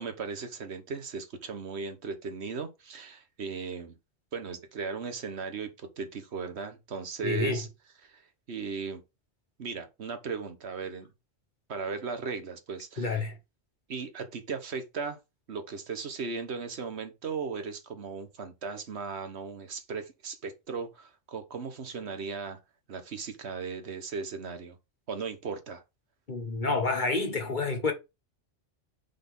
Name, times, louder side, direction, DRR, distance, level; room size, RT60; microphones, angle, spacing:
voice 1, 0.0-4.0 4.3-7.7 8.0-8.2 8.5-9.0 9.6-11.1 11.7-13.1 13.9-15.2 15.5-22.6 22.9-24.8 25.1-25.8, right 5 dB, 70° right, 1.3 m, -37 dB
voice 2, 7.2-7.6 13.0-13.4 26.3-27.9, left 3 dB, 45° left, 1.4 m, -28 dB
5.2 x 4.1 x 5.3 m
omnidirectional pair, 1.2 m